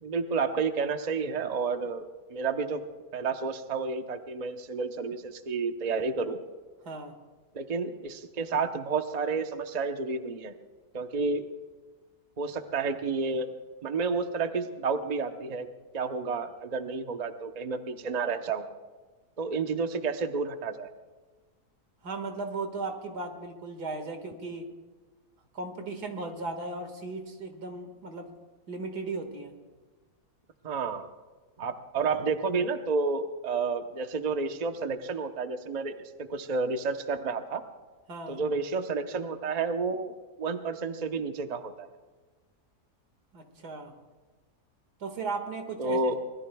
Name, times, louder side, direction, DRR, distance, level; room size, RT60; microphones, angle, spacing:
voice 1, 0.0-2.8 3.1-6.4 7.5-10.5 10.9-11.5 12.4-13.5 13.8-15.7 15.9-18.7 19.4-20.9 30.6-31.1 31.6-36.0 36.3-37.6 38.3-41.9 45.8-46.1, right 4 dB, 35° right, 7 dB, 0.8 m, -30 dB
voice 2, 6.8-7.2 22.0-24.7 25.5-28.3 28.7-29.5 38.1-38.4 43.3-43.9 45.0-46.0, right 3 dB, 80° right, 5 dB, 2.4 m, -36 dB
24.5 x 20.5 x 2.3 m, 1.3 s
omnidirectional pair, 1.7 m